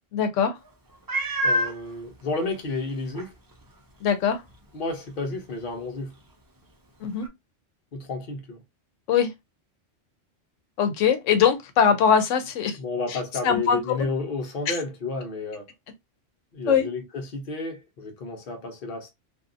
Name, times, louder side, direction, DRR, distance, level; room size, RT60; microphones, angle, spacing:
voice 1, 0.1-0.6 4.0-4.4 7.0-7.3 9.1-9.3 10.8-12.8 13.1-14.1 14.7-14.8 16.7-16.9, left 7 dB, 85° left, 0.9 m, -22 dB
Meow, 1.1-1.8 2.5-2.6 3.1-3.2 7.2-7.3, equal, 35° right, 0.3 m, -25 dB
voice 2, 1.4-3.3 4.7-6.1 7.9-8.6 12.8-15.7 16.5-19.1, left 3 dB, 50° left, 0.9 m, -31 dB
2.6 x 2.3 x 2.5 m
omnidirectional pair, 1.2 m